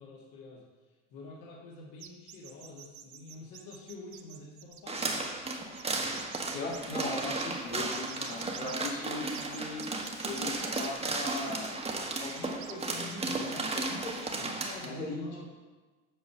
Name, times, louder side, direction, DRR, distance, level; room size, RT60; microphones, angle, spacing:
voice 1, 0.0-5.3 14.6-15.4, left 2 dB, 55° left, -2 dB, 1.9 m, -48 dB
sound 1, 2.0-7.5 7.9-8.9 9.3-13.5, right 11 dB, 45° right, 0.9 m, -48 dB
sound 2, 4.9-14.9, right 2 dB, 15° right, 1.3 m, -34 dB
voice 2, 6.5-9.8 10.2-11.7 12.2-14.5 14.8-15.4, left 3 dB, 85° left, -4 dB, 2.6 m, -39 dB
8.2 x 5.4 x 5.8 m, 1.3 s
hypercardioid pair, 85°, 39 cm